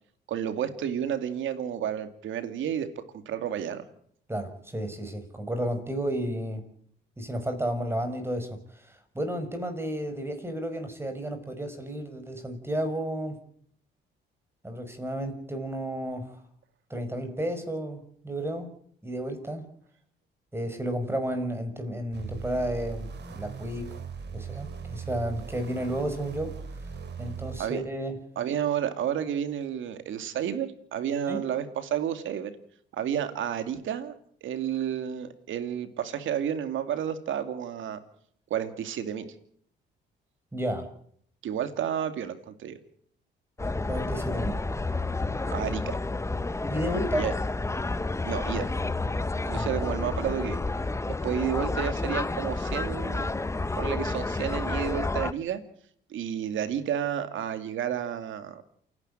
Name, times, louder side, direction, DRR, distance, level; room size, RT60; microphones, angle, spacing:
voice 1, 0.3-3.8 27.6-27.8 28.4-32.5 32.9-34.1 34.4-38.0 38.5-39.3 41.4-42.8 45.5-46.0 47.2-47.3 48.3-48.7 49.5-50.6 51.2-53.3 53.8-55.6 56.1-58.8, right 9 dB, 75° right, 10 dB, 2.5 m, -31 dB
voice 2, 4.3-6.6 7.2-13.4 14.6-16.4 16.9-18.7 19.0-19.6 20.5-23.9 24.3-26.6 27.2-28.2 31.3-31.4 40.5-40.9 43.8-44.6 46.6-47.3 49.6-49.9, right 1 dB, 10° right, 7 dB, 5.4 m, -32 dB
sound 1, 22.1-27.6, right 6 dB, 60° right, 4.0 m, -39 dB
sound 2, 43.6-55.3, left 2 dB, 15° left, 0.9 m, -30 dB
28.5 x 11.0 x 9.1 m, 0.63 s
cardioid pair, 90°, 20 cm